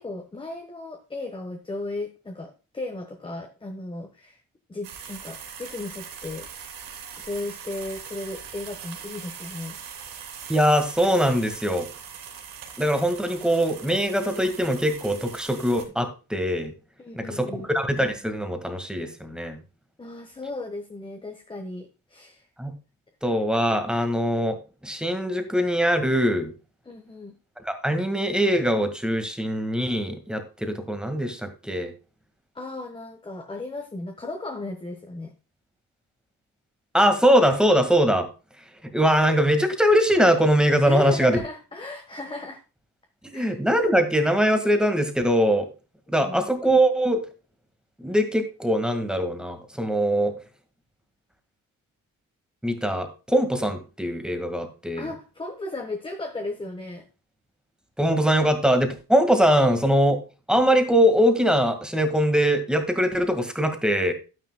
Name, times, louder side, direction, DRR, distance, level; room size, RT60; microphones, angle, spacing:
voice 1, 0.0-4.4 4.7-6.5 7.2-10.1 17.0-17.7 20.0-22.5 26.8-27.4 32.5-35.3 40.8-42.6 43.3-43.6 46.2-46.4 55.0-57.1, left 2 dB, 15° left, 4 dB, 1.3 m, -35 dB
sound 1, 4.8-15.8, right 7 dB, 85° right, 3.2 m, -41 dB
voice 2, 10.5-11.9 12.8-16.7 17.2-19.6 22.6-22.7 23.2-26.5 27.6-31.9 36.9-38.3 38.9-41.4 43.2-45.7 46.1-47.2 48.0-50.3 52.6-55.1 58.0-60.2 60.5-64.1, equal, ahead, 6 dB, 1.8 m, -22 dB
12.0 x 9.7 x 2.3 m, 0.32 s
cardioid pair, 135°, 33 cm